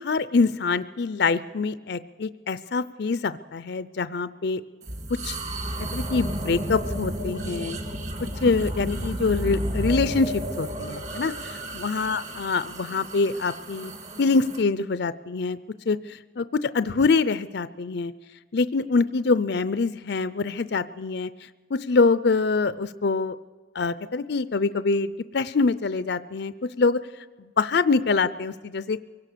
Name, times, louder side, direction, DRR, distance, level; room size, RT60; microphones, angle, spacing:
voice 1, 0.0-4.6 5.1-5.4 5.9-7.8 8.2-13.9 14.2-15.6 15.9-18.1 18.5-23.4 23.7-27.1 27.6-29.0, left 4 dB, 60° left, 15 dB, 0.5 m, -25 dB
sound 1, 4.8-14.6, equal, 40° right, 2.1 m, -32 dB
24.0 x 17.5 x 6.8 m, 1.4 s
head